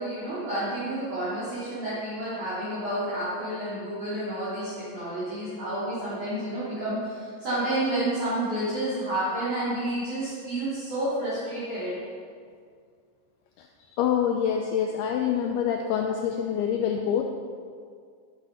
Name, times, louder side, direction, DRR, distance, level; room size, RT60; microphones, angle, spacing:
voice 1, 0.0-11.9, right 1 dB, 45° right, -13 dB, 4.7 m, -30 dB
voice 2, 14.0-17.2, left 8 dB, 85° left, 3 dB, 2.3 m, -26 dB
11.5 x 10.5 x 5.5 m, 2.1 s
omnidirectional pair, 5.3 m